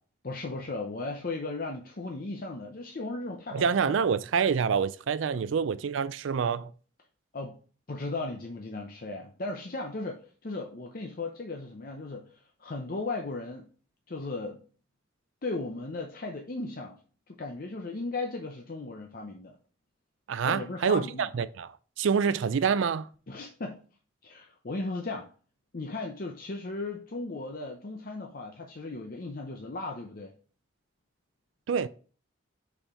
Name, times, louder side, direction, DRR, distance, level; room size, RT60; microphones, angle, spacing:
voice 1, 0.2-4.1 5.3-5.6 7.3-7.6 7.9-13.7 14.1-14.6 15.4-17.0 17.3-19.5 20.4-21.3 23.3-23.8 24.2-25.3 25.7-30.3, left 2 dB, 45° left, 0.7 m, -36 dB
voice 2, 3.5-6.7 20.3-21.7 22.0-23.1 31.7-31.9, right 6 dB, 80° right, 0.4 m, -27 dB
5.5 x 4.3 x 4.3 m
head